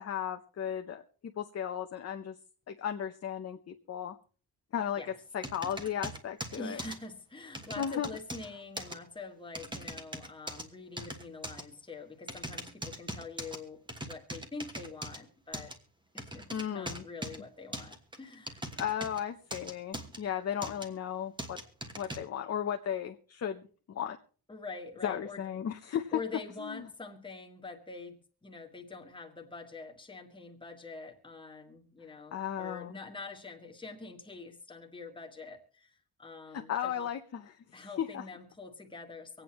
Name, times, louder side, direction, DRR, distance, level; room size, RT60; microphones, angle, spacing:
voice 1, 0.0-2.4 2.7-4.2 4.7-5.0 5.3-6.8 7.8-8.1 16.5-17.0 18.8-21.6 22.0-23.6 23.9-24.2 25.0-26.2 26.6-26.8 32.3-32.9 36.7-38.2, left 9 dB, 40° left, 5 dB, 0.8 m, -35 dB
sound 1, 5.4-7.0 7.5-8.5 8.8-9.0 9.5-10.6 11.0-11.6 12.3-13.6 13.9-15.2 15.5-15.7 16.2-17.4 17.7-19.2 19.5-20.2 20.6-20.9 21.4-22.2, right 1 dB, 10° right, 1.4 m, -40 dB
voice 2, 6.5-15.7 16.1-18.7 24.5-25.4 26.1-37.1 37.7-39.4, left 3 dB, 15° left, 1 dB, 1.7 m, -45 dB
25.0 x 8.9 x 3.1 m, 0.42 s
wide cardioid pair, 170°, 38 cm